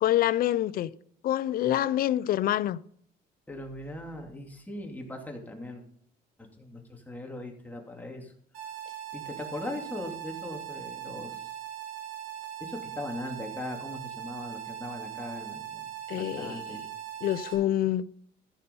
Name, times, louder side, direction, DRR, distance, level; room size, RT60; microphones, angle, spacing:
voice 1, 0.0-0.9 1.2-2.8 16.1-16.6 17.2-18.0, left 12 dB, 60° left, 0.6 m, -26 dB
voice 2, 3.5-5.8 6.6-8.3 9.1-11.5 12.6-15.9 16.2-16.8, left 1 dB, 10° left, 2.9 m, -39 dB
sound 1, 8.5-17.5, right 11 dB, 85° right, 5.1 m, -40 dB
14.5 x 7.0 x 5.4 m
cardioid pair, 110°, 17 cm